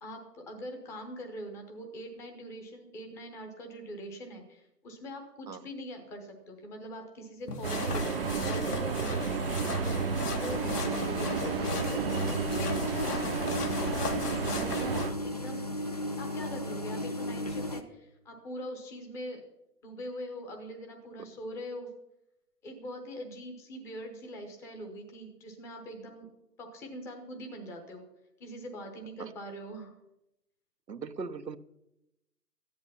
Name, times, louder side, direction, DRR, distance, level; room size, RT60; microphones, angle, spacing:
voice 1, 0.0-15.0 15.2-15.7 16.2-19.4 19.8-21.9 22.6-26.3 26.6-28.0 28.4-29.9, equal, 5° left, 4 dB, 0.8 m, -43 dB
sound 1, 7.5-15.1, left 4 dB, 70° left, 1.7 m, -38 dB
sound 2, 7.6-15.1, right 5 dB, 40° right, 0.8 m, -32 dB
sound 3, 10.5-17.8, left 1 dB, 25° left, 0.4 m, -35 dB
voice 2, 30.9-31.6, right 5 dB, 85° right, 10 dB, 1.1 m, -39 dB
14.5 x 10.5 x 5.7 m, 0.88 s
figure-of-eight pair, 140°, 48 cm